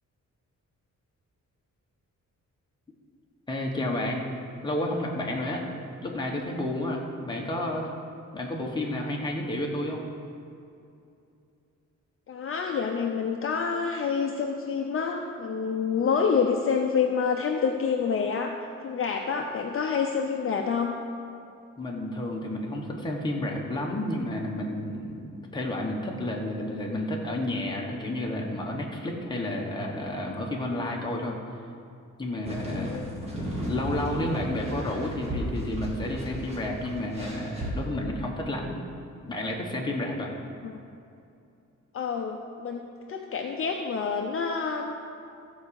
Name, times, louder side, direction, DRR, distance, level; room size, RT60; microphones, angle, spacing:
voice 1, 3.5-4.2 4.6-5.6 6.0-7.9 8.3-10.0 21.8-31.4 32.2-33.0 33.4-38.7 39.3-40.3, left 1 dB, 15° left, -2 dB, 1.2 m, -31 dB
voice 2, 12.3-18.5 18.8-21.0 32.7-33.1 40.6-40.8 41.9-44.9, left 6 dB, 45° left, 2 dB, 0.6 m, -28 dB
sound 1, 32.4-37.7, right 1 dB, 20° right, 1.9 m, -35 dB
14.5 x 4.9 x 6.9 m, 2.6 s
wide cardioid pair, 175°, 31 cm